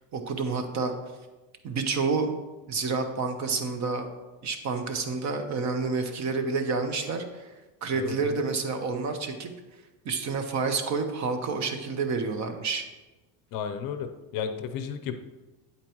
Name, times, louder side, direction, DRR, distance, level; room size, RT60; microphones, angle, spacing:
voice 1, 0.1-0.9 1.6-2.3 2.7-4.1 4.4-7.5 7.8-9.5 10.0-12.8, right 4 dB, 35° right, 6 dB, 1.0 m, -29 dB
voice 2, 7.9-8.4 13.5-15.2, left 7 dB, 45° left, 8 dB, 0.7 m, -33 dB
8.8 x 8.4 x 3.0 m, 1.1 s
supercardioid pair, 130°, 46 cm